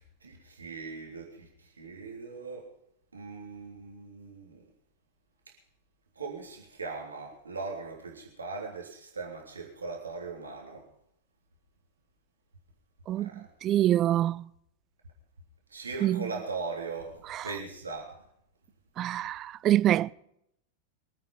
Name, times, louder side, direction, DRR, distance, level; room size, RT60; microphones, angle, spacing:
voice 1, 0.0-2.7 3.1-4.6 5.5-5.6 6.1-10.9 13.2-13.5 15.7-18.2, right 4 dB, 75° right, 3.3 m, -40 dB
voice 2, 13.6-14.4 16.0-16.2 19.0-20.1, right 12 dB, 30° right, 0.5 m, -25 dB
24.5 x 9.0 x 5.3 m
figure-of-eight pair, 90°, 0 cm